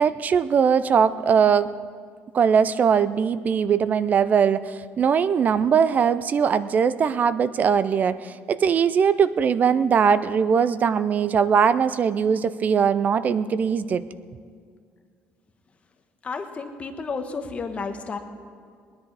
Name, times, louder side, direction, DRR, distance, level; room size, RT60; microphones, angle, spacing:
voice 1, 0.0-1.7 2.3-14.0, right 7 dB, 35° right, 16 dB, 0.4 m, -20 dB
voice 2, 16.2-18.2, left 4 dB, 30° left, 6 dB, 1.2 m, -31 dB
20.5 x 10.0 x 4.8 m, 2.1 s
cardioid pair, 130°, 5 cm